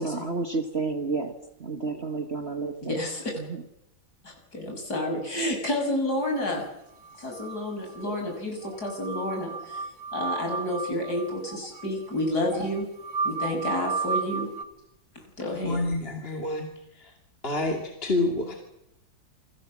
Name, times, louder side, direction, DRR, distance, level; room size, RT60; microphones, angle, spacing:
voice 1, 0.0-1.3 1.6-3.0 3.4-3.6, right 3 dB, 35° right, 7 dB, 1.7 m, -30 dB
voice 2, 2.9-3.3 4.2-6.7 7.2-9.8 10.1-12.9 13.2-14.5 15.4-15.8, left 1 dB, 50° left, 2 dB, 6.8 m, -30 dB
sound 1, 7.0-8.1 8.3-8.4 8.6-14.6, right 4 dB, 65° right, 2.3 m, -33 dB
voice 3, 15.4-17.1 17.4-18.5, left 2 dB, 30° left, 2 dB, 2.7 m, -29 dB
28.0 x 21.0 x 7.4 m, 0.83 s
omnidirectional pair, 2.1 m